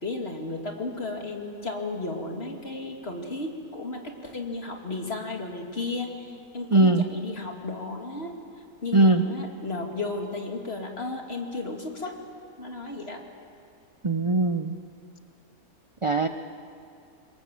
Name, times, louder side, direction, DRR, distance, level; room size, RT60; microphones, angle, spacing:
voice 1, 0.0-8.3 8.8-12.2 12.6-13.2, left 3 dB, 40° left, 2 dB, 2.6 m, -34 dB
voice 2, 6.7-7.0 8.9-9.2 14.0-14.7 16.0-16.3, right 2 dB, 40° right, 7 dB, 0.4 m, -20 dB
27.0 x 22.5 x 7.5 m, 2.4 s
omnidirectional pair, 1.6 m